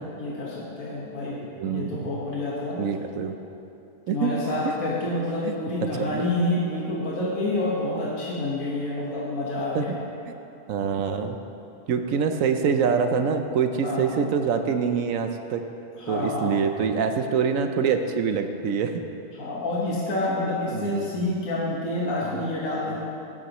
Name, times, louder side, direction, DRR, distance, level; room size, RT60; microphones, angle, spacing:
voice 1, 0.2-2.8 4.1-10.0 13.8-14.3 16.0-16.6 19.3-23.0, left 2 dB, 70° left, -6 dB, 1.8 m, -28 dB
voice 2, 1.6-2.1 2.8-3.3 4.1-4.4 4.7-4.8 5.4-5.5 6.0-6.2 7.2-7.3 9.7-9.8 10.7-11.4 11.9-15.6 16.1-19.0 20.7-21.1, right 6 dB, 70° right, 7 dB, 1.0 m, -25 dB
16.0 x 8.7 x 3.0 m, 2.7 s
omnidirectional pair, 1.6 m